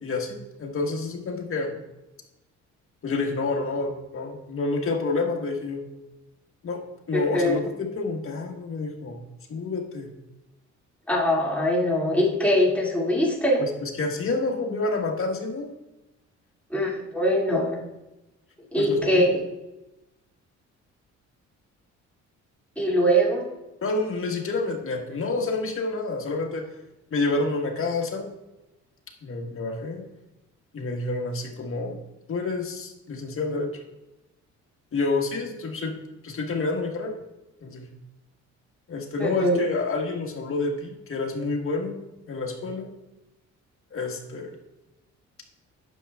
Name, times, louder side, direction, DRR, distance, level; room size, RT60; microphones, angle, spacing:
voice 1, 0.0-1.7 3.0-5.8 6.6-6.8 7.1-9.2 9.5-10.1 13.6-15.7 18.8-19.3 23.8-26.6 27.1-28.3 29.2-30.0 30.7-32.0 32.3-33.7 34.9-35.9 36.2-37.1 37.6-37.9 38.9-41.9 42.3-42.9 43.9-44.5, left 3 dB, 45° left, 2 dB, 1.5 m, -28 dB
voice 2, 7.1-7.6 11.1-13.6 16.7-17.8 18.7-19.4 22.8-23.5 39.2-39.6, equal, 5° left, -4 dB, 2.4 m, -22 dB
9.9 x 6.7 x 2.4 m, 0.97 s
cardioid pair, 90°, 30 cm